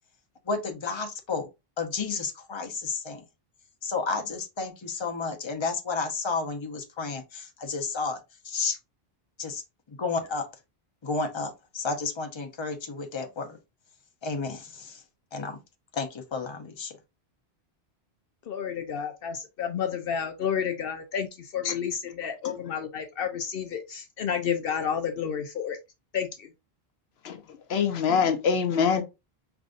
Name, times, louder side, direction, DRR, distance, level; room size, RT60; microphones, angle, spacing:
voice 1, 0.4-1.5 1.8-3.2 3.8-8.8 9.4-9.6 9.9-10.5 11.0-13.6 14.2-15.0 15.3-15.6 15.9-17.0, left 4 dB, 30° left, 0.8 m, -32 dB
voice 2, 18.5-25.8 26.1-26.5, left 7 dB, 70° left, 0.8 m, -31 dB
voice 3, 27.7-29.0, left 6 dB, 85° left, 0.9 m, -24 dB
5.1 x 3.4 x 2.5 m
omnidirectional pair, 1.0 m